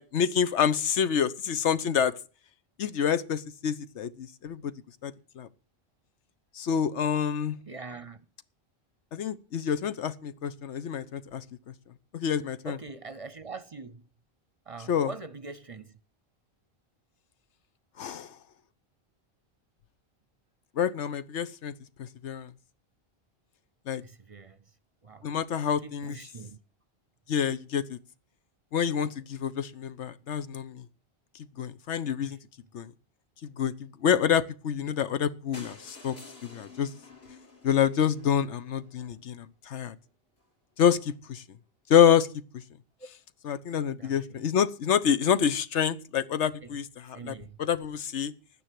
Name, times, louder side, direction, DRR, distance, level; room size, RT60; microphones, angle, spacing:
voice 1, 0.0-2.2 2.8-4.7 5.0-5.5 6.5-7.6 9.1-11.4 12.1-12.8 14.9-15.1 18.0-18.3 20.8-21.7 22.0-22.5 23.9-24.0 25.2-26.2 27.3-28.0 28.7-30.8 31.6-32.4 32.7-32.9 33.6-36.2 36.4-36.9 37.6-39.9 40.8-41.4 41.9-42.3 43.4-48.3, left 8 dB, 85° left, 1.1 m, -27 dB
voice 2, 7.7-8.2 12.6-14.0 14.7-16.0 24.0-24.6 25.0-25.3 25.8-26.6 44.0-44.4 46.6-46.7 47.1-47.6, right 4 dB, 35° right, 0.7 m, -43 dB
sound 1, 35.5-39.4 40.1-40.2 40.4-40.5 40.8-40.9 41.1-41.2, left 3 dB, 65° left, 2.8 m, -51 dB
11.5 x 9.8 x 7.6 m
omnidirectional pair, 1.1 m